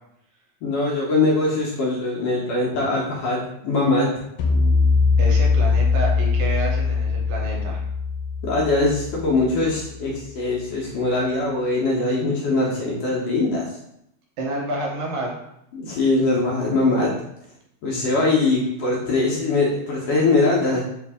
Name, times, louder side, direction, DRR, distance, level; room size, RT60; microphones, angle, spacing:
voice 1, 0.6-4.1 8.4-13.8 15.7-17.1 17.8-20.8, left 2 dB, 70° left, -4 dB, 1.6 m, -22 dB
sound 1, 4.4-9.7, left 4 dB, 90° left, 2.1 m, -21 dB
voice 2, 5.2-7.8 14.4-15.4, right 2 dB, 80° right, -1 dB, 2.3 m, -29 dB
4.7 x 2.5 x 3.5 m, 0.77 s
omnidirectional pair, 3.4 m